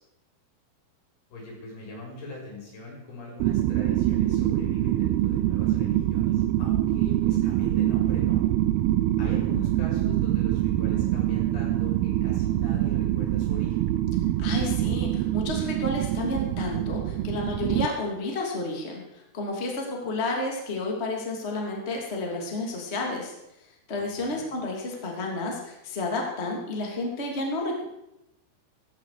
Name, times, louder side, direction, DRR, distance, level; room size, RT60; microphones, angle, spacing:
voice 1, 1.3-8.4 9.2-13.9 24.2-24.4, left 2 dB, 80° left, -3 dB, 8.0 m, -41 dB
sound 1, 3.4-17.9, right 14 dB, 80° right, 2.5 m, -25 dB
voice 2, 14.4-23.3 23.9-27.8, left 2 dB, 20° left, 0 dB, 2.4 m, -31 dB
16.5 x 15.0 x 4.9 m, 0.89 s
omnidirectional pair, 4.5 m